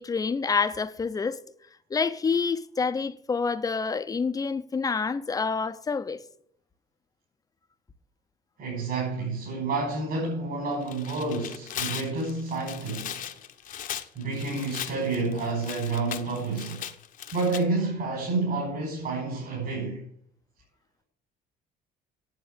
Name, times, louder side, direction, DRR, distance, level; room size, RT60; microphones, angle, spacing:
voice 1, 0.0-1.4 1.9-6.2, left 5 dB, 20° left, 0.7 m, -27 dB
voice 2, 8.6-13.3 14.2-16.9 17.3-20.0, right 3 dB, 60° right, 5.3 m, -29 dB
Tearing, 10.7-17.6, left 10 dB, 50° left, 1.0 m, -38 dB
9.6 x 7.9 x 9.0 m
cardioid pair, 135°, 17 cm